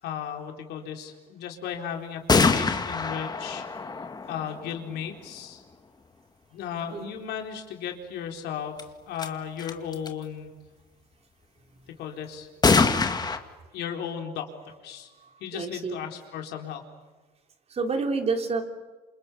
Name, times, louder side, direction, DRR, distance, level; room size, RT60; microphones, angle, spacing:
voice 1, 0.0-3.6 4.3-5.6 6.5-10.6 12.0-12.5 13.7-14.5 14.8-15.1 15.4-16.8, left 8 dB, 80° left, 3 dB, 4.1 m, -35 dB
sound 1, 2.3-5.1 8.8-8.9 9.2-9.3 9.6-10.1 12.6-13.4, left 4 dB, 25° left, 2.0 m, -24 dB
voice 2, 15.2-16.0 17.7-18.6, right 4 dB, 40° right, 5 dB, 3.4 m, -29 dB
28.0 x 28.0 x 6.9 m, 1.3 s
cardioid pair, 110°, 17 cm